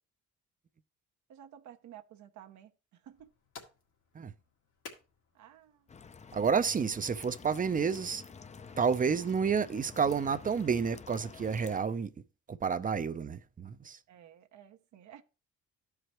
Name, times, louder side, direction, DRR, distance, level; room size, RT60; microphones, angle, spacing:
voice 1, 1.3-3.3 5.3-5.9 14.1-15.2, right 10 dB, 70° right, 0.8 m, -53 dB
sound 1, 3.0-8.1, left 5 dB, 85° left, 2.1 m, -56 dB
sound 2, 5.9-11.8, left 5 dB, 25° left, 0.5 m, -49 dB
voice 2, 6.3-8.2 8.8-12.1 12.5-14.0, right 6 dB, 30° right, 0.5 m, -30 dB
13.5 x 4.8 x 3.0 m
cardioid pair, 90°, 30 cm